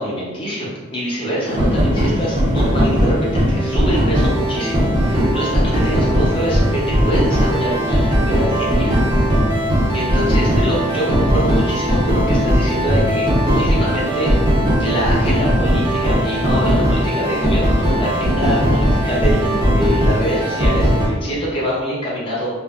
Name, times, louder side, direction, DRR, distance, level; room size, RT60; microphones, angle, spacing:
voice 1, 0.0-9.4 9.9-22.5, equal, 25° left, -6 dB, 0.7 m, -24 dB
sound 1, 1.5-21.1, equal, 20° right, 0.5 m, -18 dB
2.4 x 2.0 x 3.5 m, 1.3 s
head